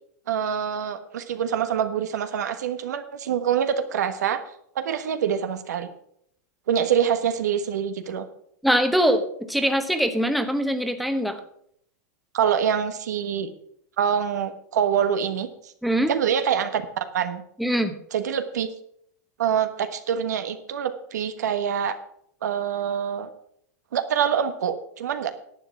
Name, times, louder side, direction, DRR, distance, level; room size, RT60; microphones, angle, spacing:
voice 1, 0.3-4.4 4.7-5.9 6.7-8.3 12.3-13.5 14.0-15.7 16.1-16.8 17.1-17.4 18.1-18.7 19.4-22.0 22.4-23.3 23.9-25.3, right 8 dB, 85° right, 9 dB, 1.2 m, -25 dB
voice 2, 8.6-11.4 15.8-16.1 17.6-17.9, equal, ahead, 7 dB, 1.0 m, -22 dB
10.5 x 7.7 x 5.9 m, 0.69 s
supercardioid pair, 135°, 9 cm